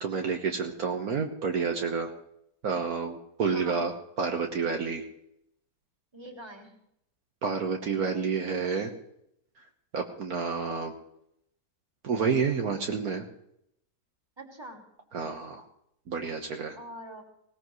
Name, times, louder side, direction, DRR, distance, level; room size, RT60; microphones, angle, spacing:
voice 1, 0.0-2.1 2.6-5.0 7.4-8.9 9.9-10.9 12.0-13.2 15.1-15.6 16.1-16.8, right 5 dB, 65° right, 3 dB, 1.6 m, -29 dB
voice 2, 3.5-3.8 6.1-6.8 14.4-14.8 16.7-17.2, right 1 dB, 15° right, 2 dB, 2.5 m, -44 dB
19.5 x 18.5 x 3.2 m, 0.76 s
omnidirectional pair, 1.8 m